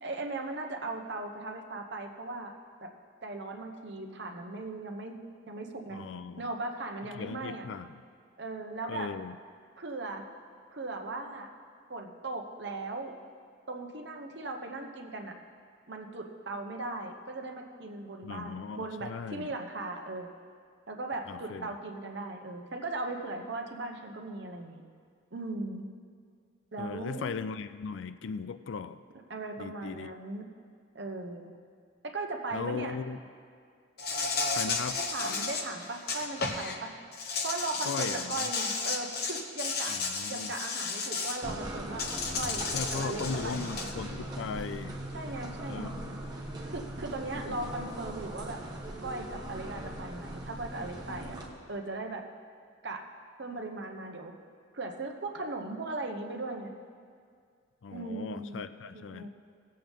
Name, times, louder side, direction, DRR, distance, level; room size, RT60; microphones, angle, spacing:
voice 1, 0.0-2.5 2.8-2.9 3.2-5.2 5.5-6.0 6.4-7.6 8.4-9.1 9.8-10.2 10.7-11.5 11.9-13.1 13.7-15.4 15.9-20.3 20.9-24.8 25.3-25.8 26.7-27.4 29.3-30.4 30.9-31.5 32.0-33.0 34.9-36.9 37.4-40.0 40.2-42.0 42.3-42.6 42.9-43.9 45.1-45.9 46.7-48.6 49.0-51.4 51.7-52.2 52.8-53.0 53.4-54.3 54.7-56.7 57.9-58.6 58.9-59.3, right 2 dB, 60° right, 3 dB, 1.0 m, -38 dB
voice 2, 5.9-6.5 7.1-8.0 8.9-9.4 18.2-19.5 21.3-21.7 26.8-29.0 29.6-30.2 32.5-33.2 34.5-35.0 37.9-38.5 39.9-40.5 42.7-45.0 45.7-46.2 47.3-47.6 57.8-59.3, left 5 dB, 75° left, 13 dB, 0.4 m, -38 dB
Insect, 34.0-36.7 37.1-41.4 42.0-43.9, left 4 dB, 50° left, 0.9 m, -33 dB
sound 1, 41.4-51.5, right 1 dB, 20° right, 1.2 m, -40 dB
18.5 x 7.7 x 3.6 m, 2.1 s
head